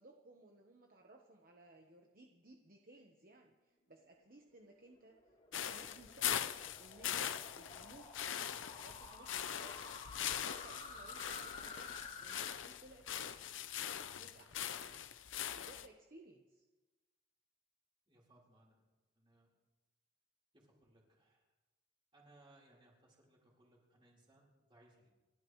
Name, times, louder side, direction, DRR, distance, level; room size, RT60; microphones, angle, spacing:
voice 1, 0.0-5.2 5.5-6.5 6.8-8.1 8.7-10.0 10.4-13.1 14.1-15.0 15.5-16.6, right 2 dB, 45° right, 2 dB, 1.1 m, -60 dB
sound 1, 4.4-12.5, left 3 dB, 40° left, 2.4 m, -52 dB
sound 2, 5.5-15.9, left 10 dB, 85° left, 0.7 m, -42 dB
voice 2, 18.1-18.8 19.2-19.5 20.5-21.4 22.1-25.1, right 1 dB, 25° right, -3 dB, 4.1 m, -67 dB
29.0 x 12.5 x 3.2 m, 1.2 s
head